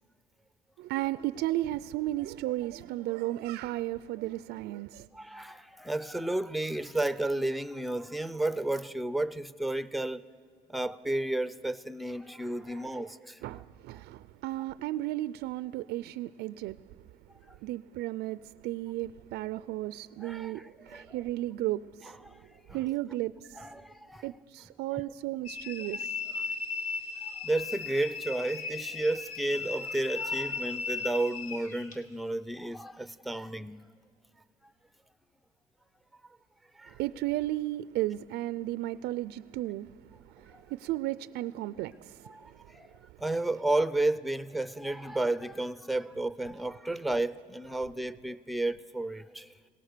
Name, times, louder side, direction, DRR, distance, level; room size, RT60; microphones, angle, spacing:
voice 1, 0.8-5.1 13.4-16.8 17.6-18.4 18.6-22.1 22.7-23.3 24.2-26.1 37.0-39.9 40.4-42.3, right 16 dB, 80° right, 0.4 m, -34 dB
voice 2, 5.1-10.2 10.7-13.6 20.2-21.2 22.0-22.4 22.7-22.9 23.5-24.3 25.8-25.9 26.3-26.4 27.2-33.8 36.8-37.0 40.5-40.6 42.2-42.9 43.2-49.5, right 2 dB, ahead, 0.5 m, -32 dB
sound 1, 25.5-32.0, left 5 dB, 50° left, 2.1 m, -36 dB
23.0 x 18.0 x 6.7 m
cardioid pair, 110°, 17 cm